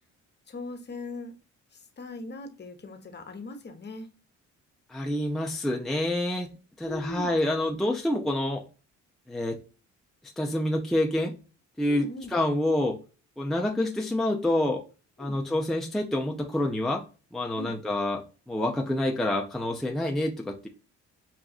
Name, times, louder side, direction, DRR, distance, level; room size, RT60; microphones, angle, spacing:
voice 1, 0.5-1.3 1.7-4.1 6.8-7.3 11.9-12.3 15.2-15.4 17.6-17.8, left 3 dB, 35° left, 1.0 m, -40 dB
voice 2, 4.9-6.5 6.8-8.6 9.3-9.6 10.4-11.3 11.8-13.0 13.4-14.8 15.2-17.0 17.3-20.7, left 1 dB, ahead, 0.6 m, -27 dB
5.9 x 2.5 x 2.3 m
cardioid pair, 90°, 30 cm